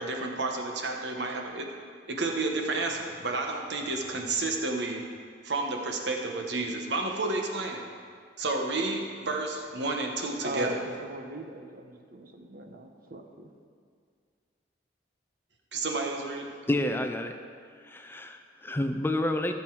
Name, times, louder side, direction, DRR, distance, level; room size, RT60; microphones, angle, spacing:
voice 1, 0.0-1.7 2.1-5.0 5.4-7.8 8.4-10.7 15.7-16.5, right 3 dB, 75° right, 2 dB, 1.2 m, -31 dB
voice 2, 10.4-13.5, right 1 dB, 55° right, 4 dB, 1.0 m, -39 dB
voice 3, 16.7-17.3 17.8-19.5, left 1 dB, 10° left, 6 dB, 0.5 m, -29 dB
14.0 x 7.0 x 4.8 m, 2.1 s
head